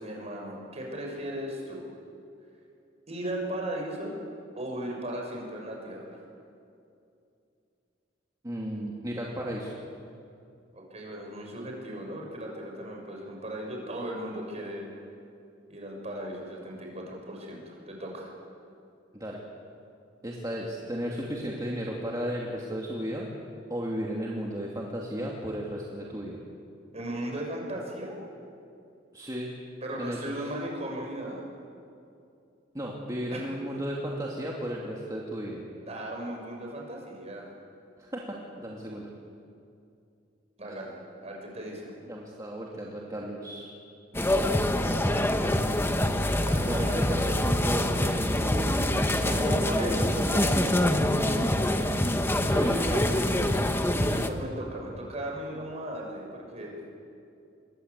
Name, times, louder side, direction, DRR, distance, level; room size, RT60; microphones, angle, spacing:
voice 1, 0.0-1.9 3.1-4.2 4.5-6.2 10.7-14.9 15.7-18.3 26.9-28.2 29.8-31.4 33.3-33.5 35.8-37.5 40.6-41.9 46.4-47.0 49.2-51.5 52.8-56.8, right 1 dB, 35° right, 0 dB, 6.4 m, -37 dB
voice 2, 8.4-9.7 19.1-19.4 20.2-23.3 23.7-26.4 29.1-29.5 30.0-30.5 32.7-35.6 38.0-39.1 40.7-40.8 42.1-43.7 44.1-44.5 46.7-49.6 52.5-53.0 53.4-53.9, equal, 20° right, -3 dB, 2.7 m, -34 dB
sound 1, 44.2-54.3, left 1 dB, 10° left, 1.4 m, -25 dB
27.5 x 22.5 x 8.4 m, 2.6 s
head